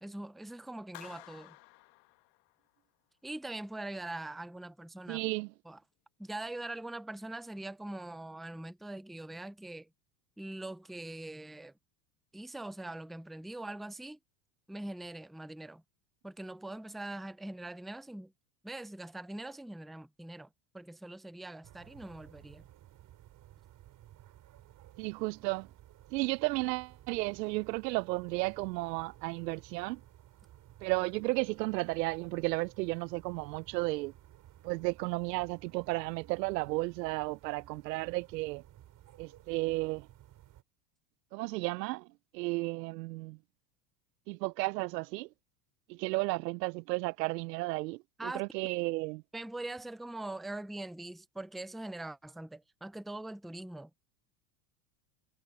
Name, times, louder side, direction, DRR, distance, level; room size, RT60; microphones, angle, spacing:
voice 1, 0.0-1.6 3.2-5.2 5.7-5.8 6.2-9.9 10.4-11.7 12.3-14.2 14.7-15.8 16.2-18.3 18.6-20.5 20.7-22.6 48.2-48.4 49.3-53.9, right 2 dB, ahead, 0.4 m, -42 dB
Clapping, 0.9-2.8, left 21 dB, 50° left, 1.5 m, -53 dB
voice 2, 5.1-5.5 25.0-25.7 26.1-30.0 30.8-34.1 34.6-38.6 39.2-40.1 41.3-42.1 42.3-43.4 44.3-45.3 45.9-49.2, right 23 dB, 85° right, 0.5 m, -33 dB
sound 1, 21.6-40.6, right 13 dB, 40° right, 5.0 m, -56 dB
supercardioid pair, 130°, 48 cm